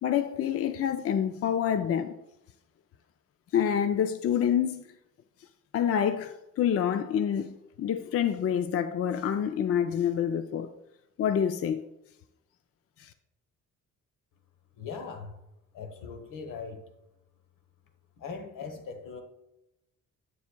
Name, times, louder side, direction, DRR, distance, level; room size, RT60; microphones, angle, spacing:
voice 1, 0.0-2.2 3.5-4.8 5.7-10.7 11.2-11.9 13.0-13.1, left 9 dB, 45° left, 0.4 m, -27 dB
voice 2, 14.8-15.4 15.7-16.8 18.2-19.2, left 5 dB, 80° left, 1.1 m, -40 dB
8.1 x 7.1 x 2.2 m
cardioid pair, 85°, 32 cm